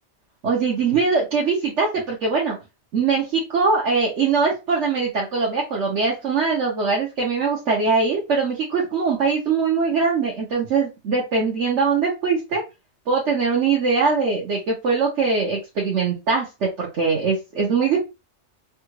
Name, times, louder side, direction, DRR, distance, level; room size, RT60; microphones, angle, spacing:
voice 1, 0.4-2.6 2.9-12.6 13.1-18.0, right 4 dB, 85° right, -3 dB, 1.2 m, -22 dB
3.3 x 2.4 x 3.1 m, 0.25 s
omnidirectional pair, 1.2 m